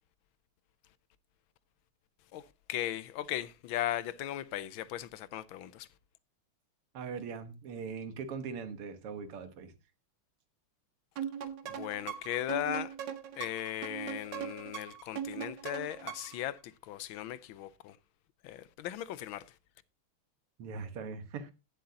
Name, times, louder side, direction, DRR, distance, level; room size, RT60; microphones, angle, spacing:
voice 1, 2.3-5.9 11.7-12.9 13.4-18.0 18.4-19.6, left 13 dB, 70° left, 1.4 m, -37 dB
voice 2, 6.9-9.7 20.6-21.5, right 5 dB, 85° right, 2.3 m, -40 dB
sound 1, 11.2-16.4, right 9 dB, 60° right, 1.6 m, -40 dB
17.0 x 7.7 x 2.8 m
omnidirectional pair, 2.4 m